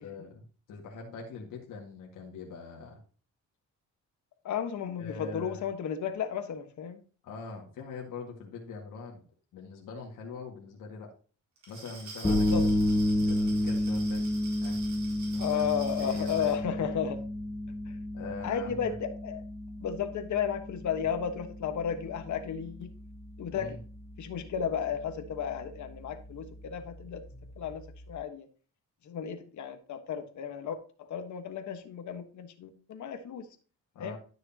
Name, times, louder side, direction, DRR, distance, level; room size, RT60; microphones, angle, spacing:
voice 1, 0.0-3.0 5.0-5.6 7.2-9.2 9.5-11.1 11.7-12.5 13.2-14.3 14.6-14.8 15.3-15.6 16.0-16.9 18.1-19.0 23.5-23.8 33.9-34.2, left 4 dB, 85° left, -1 dB, 2.1 m, -43 dB
voice 2, 4.4-7.0 12.2-12.6 15.4-17.2 17.9-18.0 18.4-19.4 19.8-22.9 23.4-23.8 24.2-27.2 27.6-28.5 29.0-33.5 34.0-34.2, left 8 dB, 65° left, 8 dB, 1.4 m, -33 dB
Glass, 11.6-16.6, right 3 dB, 65° right, 4.1 m, -46 dB
sound 1, 12.2-28.2, left 1 dB, 10° left, 1.0 m, -32 dB
12.5 x 6.5 x 2.9 m, 0.38 s
cardioid pair, 120°, 31 cm